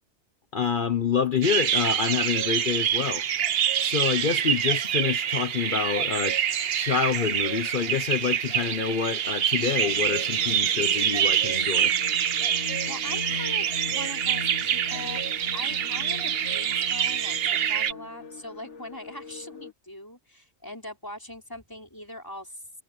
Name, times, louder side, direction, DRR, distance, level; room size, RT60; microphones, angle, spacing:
voice 1, 0.5-3.2 3.8-11.9, left 6 dB, 50° left, 1.0 m, -27 dB
sound 1, 1.4-17.9, right 9 dB, 60° right, 0.9 m, -26 dB
sound 2, 9.8-19.7, left 6 dB, 90° left, 2.0 m, -41 dB
voice 2, 12.9-22.6, left 1 dB, 15° left, 4.8 m, -41 dB
omnidirectional pair, 1.2 m